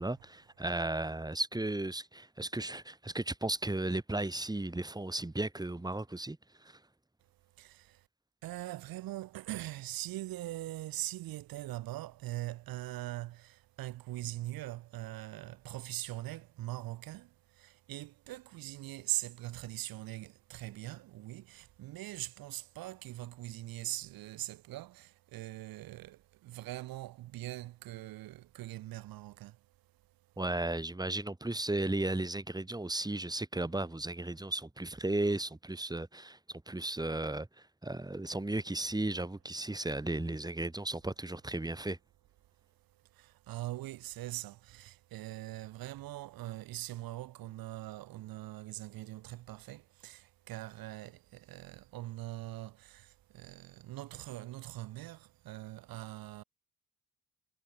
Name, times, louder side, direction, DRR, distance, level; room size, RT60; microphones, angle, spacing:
voice 1, 0.0-6.4 6.6-6.8 30.4-37.5 37.8-42.0, right 2 dB, 10° right, 1.8 m, -35 dB
voice 2, 7.6-8.1 8.4-29.6 43.1-56.4, right 16 dB, 70° right, 1.7 m, -42 dB
hypercardioid pair, 50°, 37 cm